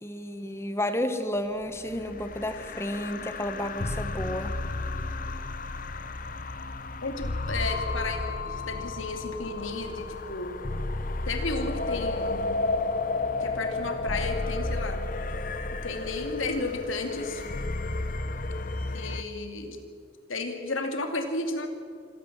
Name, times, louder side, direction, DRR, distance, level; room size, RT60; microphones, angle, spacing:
voice 1, 0.0-4.5, left 1 dB, 15° left, 9 dB, 1.2 m, -31 dB
sound 1, 1.6-19.2, left 2 dB, 45° left, 1.0 m, -32 dB
voice 2, 7.0-10.6 11.3-12.5 13.4-15.0 15.7-17.4 18.9-19.8 20.3-21.7, left 3 dB, 80° left, 5 dB, 2.6 m, -33 dB
26.0 x 13.5 x 7.4 m, 2.5 s
head